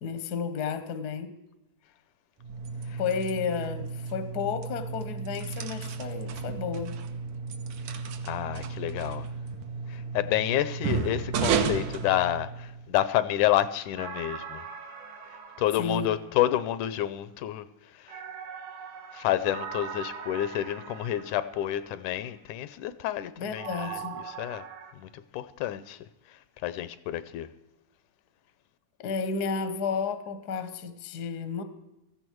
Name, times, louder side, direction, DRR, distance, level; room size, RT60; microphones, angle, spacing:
voice 1, 0.0-1.3 3.0-7.0 15.8-16.1 23.4-24.2 29.0-31.6, left 5 dB, 60° left, 1.0 m, -32 dB
sound 1, 2.4-12.9, right 5 dB, 70° right, 2.3 m, -33 dB
voice 2, 8.2-9.3 9.9-14.6 15.6-17.7 17.9-18.2 19.1-24.0 24.3-24.6 25.0-26.0 26.6-27.5, left 12 dB, 80° left, 2.0 m, -29 dB
sound 2, 14.0-16.8 18.1-21.9 23.6-24.9, right 7 dB, 90° right, 3.4 m, -41 dB
17.0 x 14.0 x 4.6 m
omnidirectional pair, 3.6 m